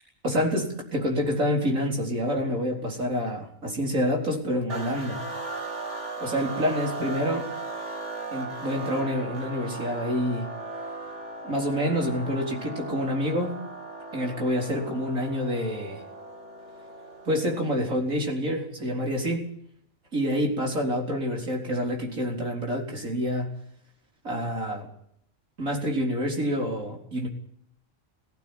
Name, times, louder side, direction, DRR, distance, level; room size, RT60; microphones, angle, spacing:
voice 1, 0.2-5.2 6.2-7.5 8.3-10.5 11.4-13.5 14.1-16.0 17.2-19.5 20.1-23.5 24.2-24.9 25.6-27.3, equal, 80° right, 0 dB, 4.6 m, -27 dB
sound 1, 4.7-18.1, right 2 dB, 60° right, 2.8 m, -37 dB
18.0 x 15.5 x 9.7 m, 0.70 s
omnidirectional pair, 1.4 m